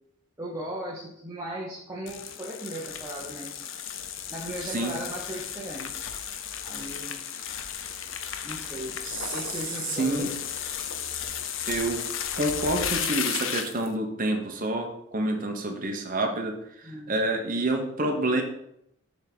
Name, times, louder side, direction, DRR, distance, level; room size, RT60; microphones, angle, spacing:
voice 1, 0.4-3.6 4.3-6.1 6.6-7.2 8.4-9.0 9.3-10.3 16.8-17.2, right 1 dB, 15° right, -5 dB, 0.9 m, -37 dB
sound 1, 2.1-13.9, left 8 dB, 65° left, 0.6 m, -34 dB
voice 2, 4.6-4.9 9.0-9.3 9.9-10.3 11.6-12.0 12.4-16.5 17.1-18.4, right 2 dB, 40° right, 3 dB, 1.0 m, -28 dB
7.1 x 3.5 x 5.4 m, 0.75 s
head